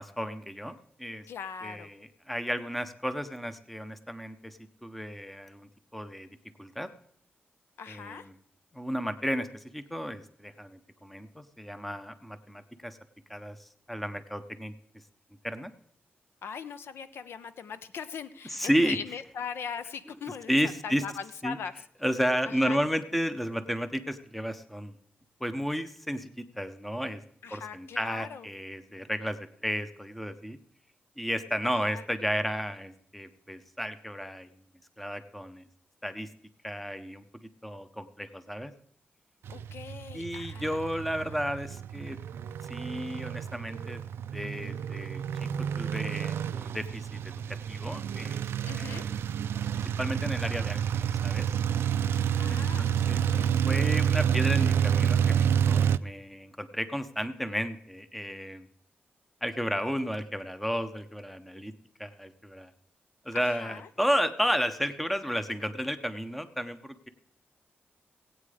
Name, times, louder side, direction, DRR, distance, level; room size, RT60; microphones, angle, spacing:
voice 1, 0.0-1.2 1.6-6.3 6.6-6.9 7.9-8.3 8.7-13.0 13.3-14.7 15.4-15.7 18.5-19.0 20.5-21.0 21.4-21.6 22.0-25.0 25.4-27.2 27.5-30.6 31.2-34.5 35.0-35.6 36.0-36.3 36.6-37.2 37.6-38.7 40.1-42.2 42.7-44.0 44.3-45.2 45.8-47.4 47.7-48.4 48.8-49.1 50.0-51.5 52.5-53.3 53.7-58.7 59.4-61.7 62.0-62.7 63.2-67.1, equal, 5° left, 11 dB, 0.6 m, -33 dB
voice 2, 1.3-1.9 7.8-8.3 16.4-20.5 20.8-21.7 22.5-22.8 27.4-28.5 31.6-32.0 39.5-40.8 48.6-49.0 52.4-53.6 63.3-63.9, left 6 dB, 80° left, 12 dB, 0.8 m, -40 dB
sound 1, 39.5-56.0, right 8 dB, 90° right, 0.4 m, -29 dB
17.5 x 8.5 x 4.9 m, 0.67 s
wide cardioid pair, 180°, 4 cm